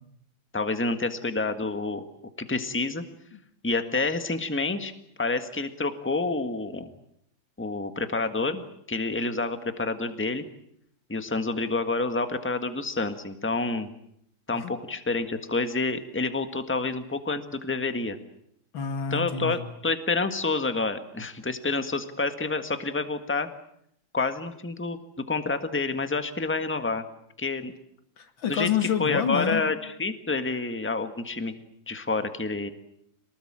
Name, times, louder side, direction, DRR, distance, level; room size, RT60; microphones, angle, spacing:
voice 1, 0.5-2.0 2.4-3.0 3.6-4.9 5.2-6.9 7.6-8.6 8.9-10.4 11.1-13.9 14.5-18.2 19.1-23.5 24.1-27.0 27.4-27.7 28.5-28.7 29.0-31.5 31.9-32.7, left 3 dB, 5° left, 9 dB, 1.5 m, -28 dB
voice 2, 18.7-19.6 28.2-29.6, left 8 dB, 90° left, 9 dB, 2.7 m, -28 dB
27.5 x 19.5 x 8.9 m, 0.73 s
omnidirectional pair, 2.1 m